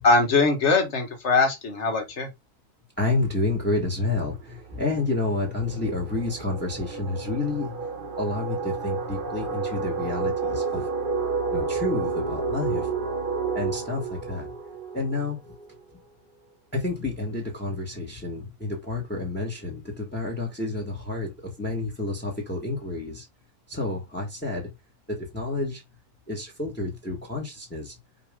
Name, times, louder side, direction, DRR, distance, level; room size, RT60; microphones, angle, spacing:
voice 1, 0.0-2.3, left 3 dB, 50° left, 1.9 m, -21 dB
voice 2, 3.0-7.8 8.2-10.9 11.5-12.9 13.5-14.5 14.9-15.4 16.7-23.2 23.7-24.7 25.1-25.8 26.3-27.9, left 2 dB, 5° left, 1.6 m, -29 dB
sound 1, 3.9-4.0 4.2-15.8, right 4 dB, 35° right, 1.2 m, -31 dB
5.2 x 4.9 x 3.7 m
omnidirectional pair, 1.6 m